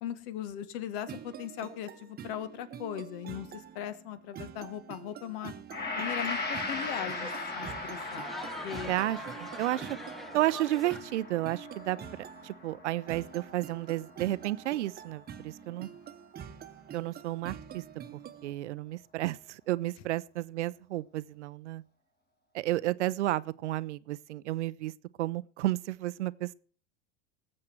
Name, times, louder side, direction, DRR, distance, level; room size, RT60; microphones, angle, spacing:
voice 1, 0.0-5.5 5.9-8.3 8.6-8.9, left 10 dB, 60° left, 1.5 m, -39 dB
sound 1, 1.1-18.5, right 9 dB, 30° right, 1.1 m, -47 dB
Gong, 5.7-14.1 14.5-14.6, left 3 dB, 30° left, 2.4 m, -39 dB
sound 2, 5.8-11.0, right 1 dB, ahead, 0.8 m, -44 dB
voice 2, 8.9-9.9 10.3-12.0 12.4-15.9 16.9-17.8 18.1-21.8 22.5-24.9 25.2-26.5, right 15 dB, 80° right, 0.6 m, -32 dB
19.0 x 7.6 x 4.5 m
hypercardioid pair, 100°, 34 cm